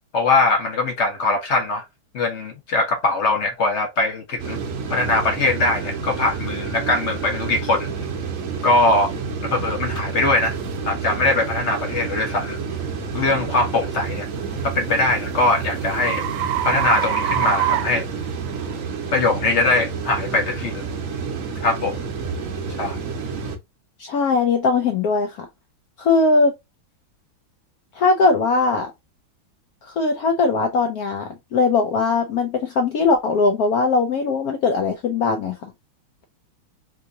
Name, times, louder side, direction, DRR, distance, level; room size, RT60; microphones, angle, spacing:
voice 1, 0.1-1.8 2.1-4.6 4.9-7.9 8.6-9.1 9.4-10.6 10.9-12.6 13.1-14.3 14.6-16.3 16.6-18.1 19.1-20.9 21.6-22.0 22.8-23.0, left 2 dB, 45° left, 0.9 m, -21 dB
sound 1, 4.4-23.6, right 5 dB, 55° right, 1.0 m, -29 dB
sound 2, 10.0-10.1 10.6-10.8 11.4-11.6 14.3-18.8, right 12 dB, 85° right, 1.3 m, -26 dB
voice 2, 24.0-25.5 26.0-26.5 28.0-28.9 29.8-35.6, left 3 dB, 70° left, 0.9 m, -20 dB
3.6 x 2.9 x 2.5 m
omnidirectional pair, 2.2 m